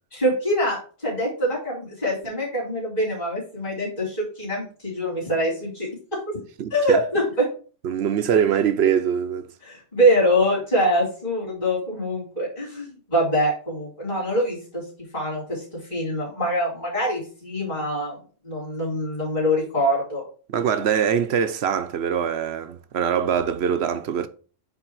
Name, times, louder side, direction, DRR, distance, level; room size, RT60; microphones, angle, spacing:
voice 1, 0.1-6.2 6.7-7.4 9.6-14.8 15.1-18.2 18.4-20.2, equal, 35° left, 3.2 m, -24 dB
voice 2, 6.6-7.0 7.8-9.5 20.5-24.3, right 8 dB, 65° right, 0.8 m, -23 dB
7.9 x 3.7 x 4.6 m
omnidirectional pair, 1.3 m